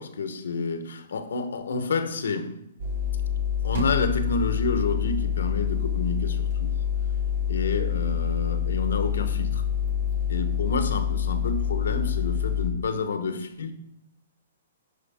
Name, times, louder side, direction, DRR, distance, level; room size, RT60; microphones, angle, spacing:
voice 1, 0.0-2.6 3.6-6.5 7.5-9.6 10.3-13.7, left 4 dB, 85° left, 0.9 m, -29 dB
sound 1, 2.8-12.7, left 8 dB, 65° right, 1.3 m, -26 dB
10.5 x 5.1 x 3.5 m
hypercardioid pair, 140°, 0 cm